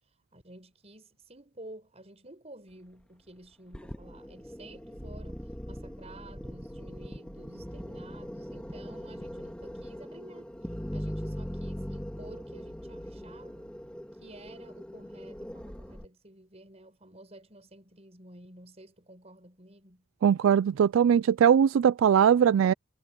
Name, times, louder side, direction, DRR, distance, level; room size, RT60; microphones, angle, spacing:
voice 1, 0.3-10.5 10.9-13.7 14.2-20.0, right 1 dB, 30° right, 6.8 m, -51 dB
sound 1, 3.7-16.1, equal, 5° left, 2.0 m, -40 dB
voice 2, 20.2-22.7, right 8 dB, 75° right, 0.3 m, -21 dB
head